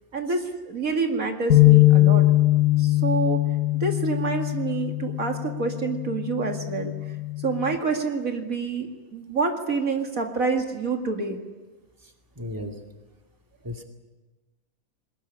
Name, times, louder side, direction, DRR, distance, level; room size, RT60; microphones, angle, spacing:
voice 1, 0.1-2.2 2.8-3.4 3.8-6.9 7.4-11.4, right 4 dB, 65° right, 3 dB, 2.6 m, -27 dB
sound 1, 1.5-7.7, left 17 dB, 65° left, 1.7 m, -21 dB
voice 2, 12.0-12.8 13.6-13.8, left 1 dB, 15° right, 3 dB, 2.5 m, -36 dB
22.0 x 20.0 x 10.0 m, 1.2 s
omnidirectional pair, 1.6 m